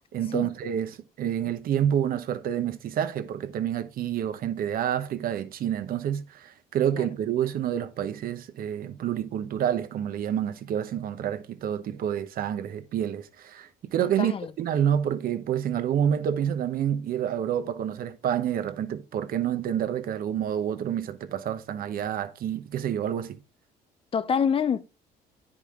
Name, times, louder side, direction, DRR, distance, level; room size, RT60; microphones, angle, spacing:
voice 1, 0.1-23.4, right 9 dB, 60° right, 1.0 m, -28 dB
voice 2, 14.2-14.5 24.1-24.8, left 7 dB, 35° left, 0.6 m, -26 dB
10.0 x 5.0 x 3.7 m
cardioid pair, 110°, 17 cm